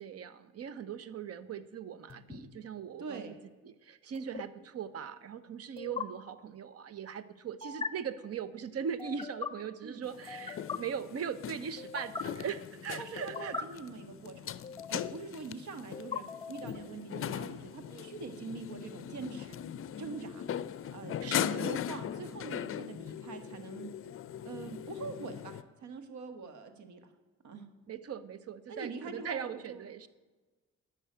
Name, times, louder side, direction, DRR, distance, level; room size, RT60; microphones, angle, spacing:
voice 1, 0.0-3.4 3.6-13.6 21.2-21.7 27.9-30.1, right 7 dB, 55° right, 15 dB, 0.8 m, -40 dB
sound 1, 2.1-2.4 4.1-4.4 5.8-6.0 7.6-7.9 9.0-9.5 10.3-10.8 11.8-12.2 13.1-13.6 14.6-15.2 15.9-16.8, left 5 dB, 20° left, 1.0 m, -40 dB
voice 2, 3.0-3.4 9.8-10.0 13.0-14.6 14.9-19.6 20.0-20.5 20.9-21.2 21.5-23.9 24.4-27.1 27.4-27.7 28.7-30.1, right 4 dB, 70° right, 8 dB, 1.5 m, -44 dB
sound 2, 10.1-25.6, left 9 dB, 45° left, 0.5 m, -40 dB
11.0 x 6.1 x 8.8 m, 1.3 s
cardioid pair, 90°, 30 cm